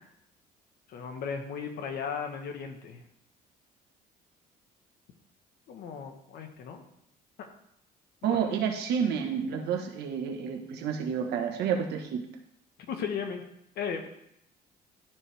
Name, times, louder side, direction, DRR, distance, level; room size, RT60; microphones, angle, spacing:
voice 1, 0.9-3.0 5.7-6.8 7.4-7.5 8.2-8.4 12.9-13.4 13.8-14.1, left 6 dB, 70° left, 5 dB, 1.3 m, -36 dB
voice 2, 8.2-12.2, right 7 dB, 80° right, 4 dB, 1.2 m, -29 dB
12.0 x 4.8 x 3.4 m, 0.74 s
cardioid pair, 110°, 17 cm